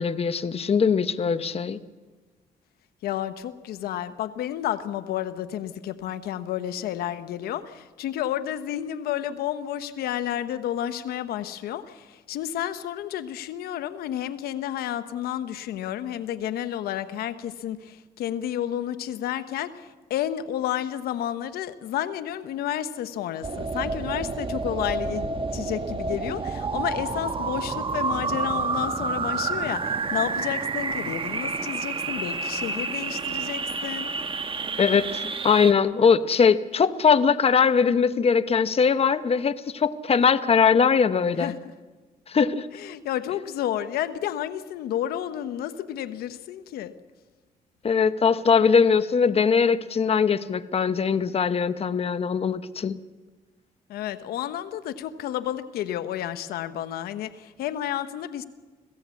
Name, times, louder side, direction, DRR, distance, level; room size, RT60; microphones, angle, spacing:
voice 1, 0.0-1.8 34.8-41.5 42.3-42.7 47.8-53.0, left 6 dB, 40° left, 13 dB, 1.0 m, -21 dB
voice 2, 3.0-34.1 41.4-41.7 42.7-46.9 53.9-58.4, left 11 dB, 85° left, 12 dB, 1.0 m, -31 dB
sound 1, 23.4-35.7, right 4 dB, 35° right, 1.5 m, -29 dB
26.0 x 16.5 x 8.4 m, 1.3 s
cardioid pair, 75°, 16 cm